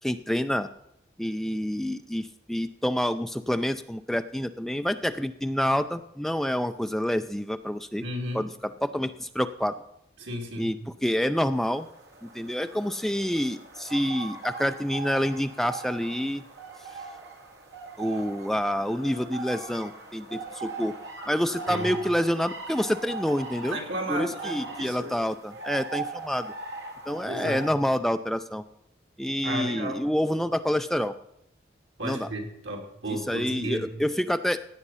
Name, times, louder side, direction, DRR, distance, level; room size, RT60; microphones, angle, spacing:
voice 1, 0.0-0.7 1.2-8.0 8.3-8.5 8.8-9.8 10.6-10.8 11.0-11.9 12.3-16.4 18.0-20.9 21.3-23.8 24.1-26.5 27.1-28.6 29.2-31.1 32.0-32.3 33.3-34.6, equal, ahead, 9 dB, 0.4 m, -27 dB
voice 2, 8.0-8.5 10.2-10.7 21.7-21.9 23.6-25.2 27.2-27.6 29.4-30.0 32.0-33.9, right 1 dB, 90° right, 1 dB, 2.8 m, -34 dB
sound 1, 11.5-27.7, right 3 dB, 70° right, 2.3 m, -40 dB
16.0 x 8.9 x 5.6 m, 0.79 s
head